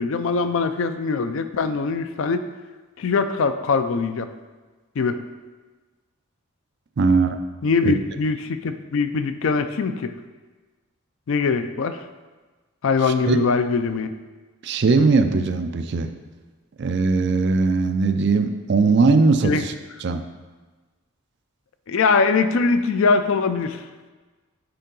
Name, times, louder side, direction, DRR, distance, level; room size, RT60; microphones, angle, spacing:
voice 1, 0.0-2.4 3.0-4.3 5.0-5.2 7.6-10.1 11.3-12.0 12.8-14.1 19.4-19.6 21.9-23.8, left 4 dB, 65° left, 10 dB, 0.4 m, -22 dB
voice 2, 7.0-7.4 7.8-7.9 13.0-13.4 14.6-16.1 16.8-19.7 20.0-20.2, right 4 dB, 50° right, 7 dB, 0.4 m, -19 dB
6.8 x 4.6 x 3.8 m, 1.3 s
head